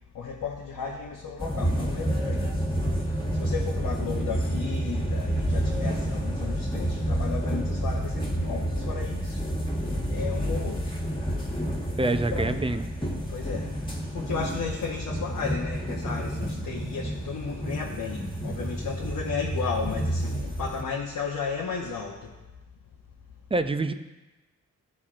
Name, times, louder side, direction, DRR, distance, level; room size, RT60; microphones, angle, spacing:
voice 1, 0.1-2.4 3.0-9.4 10.1-10.8 12.1-12.4 13.3-13.7 14.1-22.3, left 5 dB, 80° left, -2 dB, 0.9 m, -34 dB
sound 1, 1.4-20.8, right 1 dB, 15° left, 1.5 m, -29 dB
voice 2, 12.0-12.8 23.5-23.9, right 2 dB, 20° right, 9 dB, 0.4 m, -26 dB
12.5 x 4.3 x 2.5 m, 1.1 s
cardioid pair, 85°, 32 cm